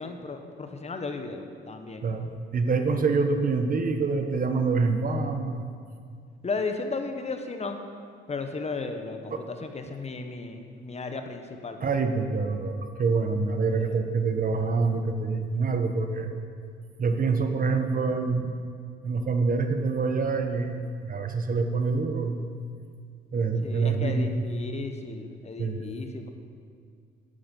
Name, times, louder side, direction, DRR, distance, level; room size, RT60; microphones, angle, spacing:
voice 1, 0.0-2.1 6.4-7.8 8.3-11.8 23.6-26.3, left 3 dB, 35° left, 6 dB, 1.2 m, -35 dB
voice 2, 2.0-5.7 9.3-9.4 11.8-16.3 17.0-18.6 19.0-22.5 23.3-24.3 25.6-25.8, right 4 dB, 45° right, 6 dB, 1.2 m, -26 dB
12.0 x 11.5 x 5.4 m, 2.1 s
cardioid pair, 90°, 20 cm